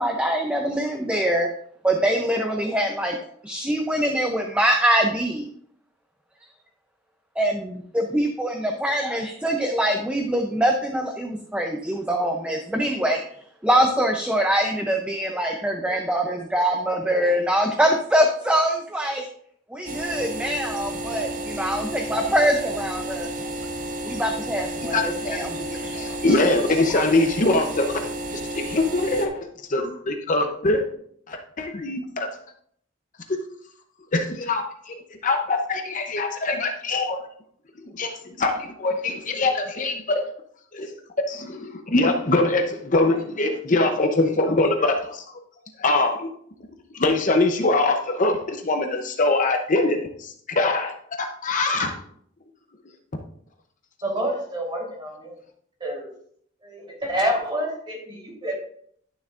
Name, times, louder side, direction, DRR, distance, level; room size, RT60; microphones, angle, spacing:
voice 1, 0.0-1.5 1.8-3.2 3.4-5.5 7.4-13.2 13.6-19.3 19.7-23.3 24.0-26.3, equal, 5° right, 3 dB, 0.6 m, -24 dB
sound 1, 19.9-29.3, right 1 dB, 40° right, 1.0 m, -32 dB
voice 2, 24.9-28.0 28.5-30.9 31.3-32.3 33.3-33.4 34.1-34.6 35.2-37.3 37.8-40.3 40.7-41.0 41.3-45.2 45.8-46.3 46.9-52.0, left 2 dB, 40° left, 4 dB, 0.7 m, -23 dB
voice 3, 54.0-55.4 55.8-56.1 56.6-58.6, equal, 25° right, -3 dB, 3.3 m, -28 dB
11.5 x 7.0 x 2.5 m, 0.64 s
head